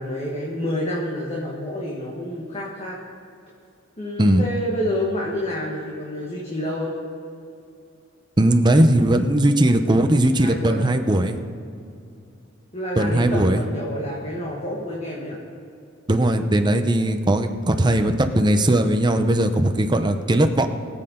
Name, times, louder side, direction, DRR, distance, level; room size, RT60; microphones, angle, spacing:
voice 1, 0.0-3.0 4.0-6.9 10.4-11.0 12.7-15.4, left 1 dB, 35° left, -4 dB, 1.6 m, -28 dB
voice 2, 8.4-11.4 13.0-13.6 16.1-20.7, right 1 dB, 25° right, 7 dB, 0.8 m, -19 dB
22.5 x 7.9 x 3.8 m, 2.5 s
head